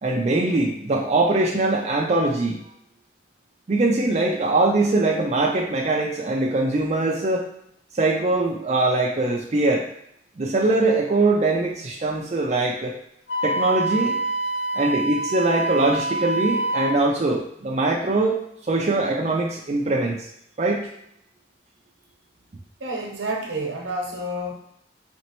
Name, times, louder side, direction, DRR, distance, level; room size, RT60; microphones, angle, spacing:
voice 1, 0.0-2.6 3.7-7.4 7.9-9.9 10.4-12.9 13.4-14.1 14.7-18.4 18.7-20.2 20.6-20.9, right 2 dB, 35° right, -1 dB, 0.4 m, -22 dB
Wind instrument woodwind instrument, 13.3-17.0, right 2 dB, 60° left, 0.3 m, -26 dB
voice 2, 22.8-24.5, right 1 dB, 80° right, -1 dB, 0.9 m, -29 dB
4.2 x 2.9 x 3.0 m, 0.75 s
head